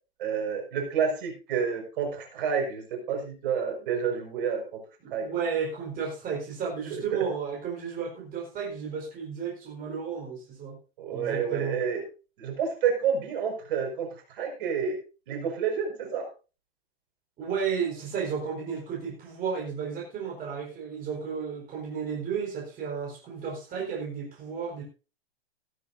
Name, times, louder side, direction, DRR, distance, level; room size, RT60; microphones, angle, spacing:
voice 1, 0.2-4.8 5.1-5.3 6.9-7.2 11.0-12.0 12.4-15.0 15.3-16.3, right 6 dB, 55° right, 2 dB, 5.4 m, -29 dB
voice 2, 5.0-10.8 11.1-11.8 17.4-24.8, right 6 dB, 30° right, -2 dB, 4.4 m, -33 dB
15.0 x 12.0 x 2.7 m, 0.33 s
hypercardioid pair, 110°, 31 cm